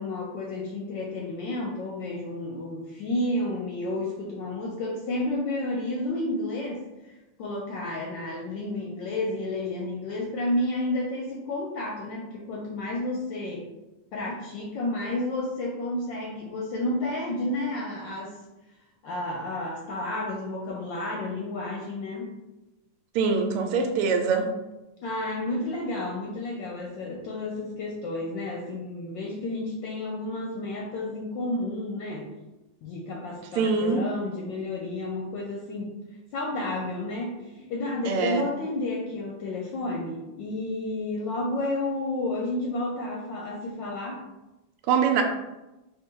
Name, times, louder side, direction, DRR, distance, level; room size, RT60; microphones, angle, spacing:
voice 1, 0.0-6.9 7.4-13.6 14.1-18.4 19.0-22.3 25.0-32.3 32.8-36.0 36.3-44.2, left 2 dB, 70° left, -1 dB, 1.1 m, -31 dB
voice 2, 23.1-24.5 33.6-34.0 38.1-38.4 44.9-45.2, right 5 dB, 85° right, 5 dB, 1.5 m, -23 dB
3.7 x 2.7 x 4.5 m, 1.0 s
omnidirectional pair, 2.4 m